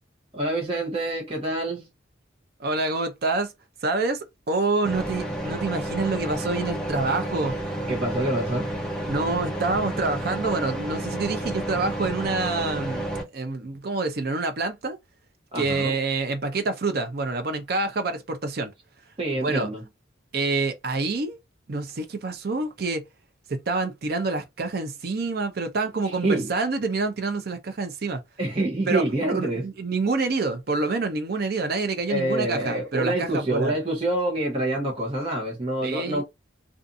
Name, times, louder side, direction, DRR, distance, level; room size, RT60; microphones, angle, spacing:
voice 1, 0.3-1.9 7.9-8.7 15.5-16.0 19.2-19.8 26.2-26.5 28.4-29.6 32.1-36.2, right 1 dB, 30° right, 0.8 m, -26 dB
voice 2, 2.6-3.5 3.8-7.5 9.1-15.0 15.5-18.7 19.4-19.7 20.3-21.4 21.7-23.0 23.5-28.2 28.9-33.8 35.8-36.2, right 3 dB, 50° right, 0.5 m, -27 dB
sound 1, 4.8-13.2, right 1 dB, 5° left, 0.5 m, -31 dB
2.5 x 2.5 x 2.5 m
head